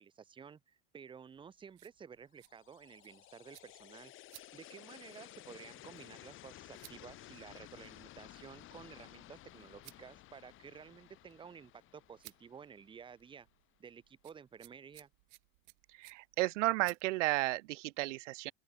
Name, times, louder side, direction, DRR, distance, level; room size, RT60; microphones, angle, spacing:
voice 1, 0.0-13.5 13.8-15.1, right 7 dB, 15° right, 0.8 m, -53 dB
sound 1, 1.3-17.5, right 28 dB, 65° right, 2.3 m, -63 dB
sound 2, 2.4-13.4, left 15 dB, 35° left, 1.5 m, -55 dB
voice 2, 15.9-18.5, right 20 dB, 85° right, 0.8 m, -33 dB
open air
supercardioid pair, 145°, 36 cm